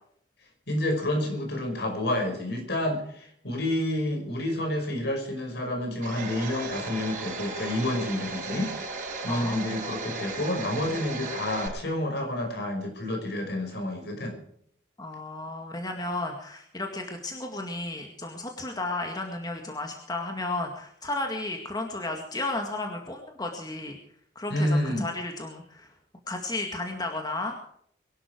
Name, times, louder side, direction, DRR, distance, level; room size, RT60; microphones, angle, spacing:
voice 1, 0.7-8.7 9.2-14.4 24.5-25.0, left 1 dB, 65° left, 4 dB, 5.5 m, -29 dB
Domestic sounds home sounds, 6.0-11.7, right 3 dB, 50° right, 6.0 m, -36 dB
voice 2, 9.3-9.6 15.0-24.0 24.4-25.9 26.3-27.6, left 2 dB, 20° left, 3 dB, 2.0 m, -33 dB
23.0 x 12.0 x 4.6 m, 0.66 s
head